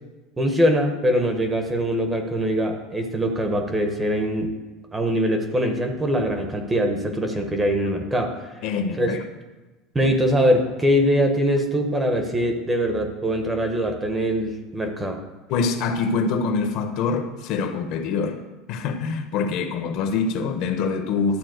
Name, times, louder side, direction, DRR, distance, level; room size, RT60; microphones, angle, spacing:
voice 1, 0.4-4.5 4.9-8.3 9.0-9.1 9.9-15.2, equal, 10° right, 0.9 m, -22 dB
voice 2, 8.6-9.2 10.0-10.1 15.5-18.4 18.7-21.4, left 5 dB, 45° left, 0.9 m, -25 dB
11.5 x 4.2 x 7.9 m
cardioid pair, 175°, 0 cm